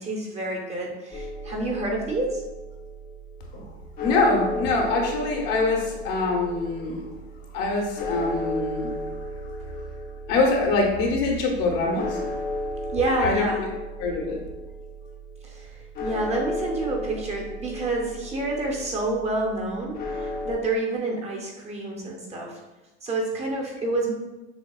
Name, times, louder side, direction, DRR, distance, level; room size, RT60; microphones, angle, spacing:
voice 1, 0.0-2.4 12.9-13.6 15.4-15.7 16.0-22.6 23.0-24.1, right 2 dB, 20° right, 0 dB, 0.6 m, -28 dB
sound 1, 1.1-20.5, left 1 dB, 30° left, 0.6 m, -35 dB
voice 2, 4.0-7.0 7.5-9.0 10.3-12.1 13.2-13.5 14.0-14.4, left 3 dB, 60° left, 0 dB, 1.0 m, -24 dB
6.3 x 2.2 x 2.3 m, 1.1 s
supercardioid pair, 125°, 32 cm